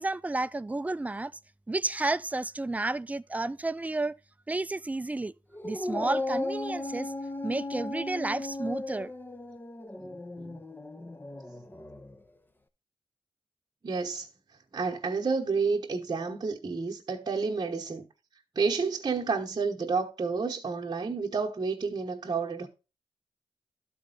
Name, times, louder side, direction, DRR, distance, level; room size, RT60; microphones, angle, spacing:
voice 1, 0.0-1.3 1.7-4.2 4.5-5.3 5.6-7.1 7.4-9.1, right 2 dB, 15° right, 0.4 m, -31 dB
Dog, 5.5-12.2, left 2 dB, 20° left, 0.8 m, -36 dB
voice 2, 10.0-10.6 13.8-14.3 14.7-18.1 18.5-22.7, right 4 dB, 45° right, 1.1 m, -30 dB
11.5 x 4.3 x 3.9 m
cardioid pair, 45°, 10 cm